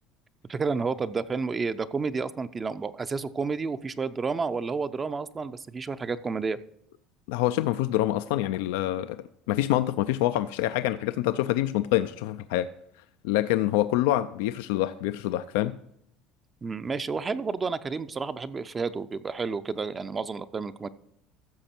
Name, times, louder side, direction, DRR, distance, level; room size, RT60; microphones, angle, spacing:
voice 1, 0.5-6.6 16.6-20.9, right 4 dB, 20° right, 0.4 m, -30 dB
voice 2, 7.3-12.7 13.2-15.8, left 14 dB, 85° left, 0.4 m, -26 dB
14.0 x 6.6 x 4.4 m
cardioid pair, 125°, 0 cm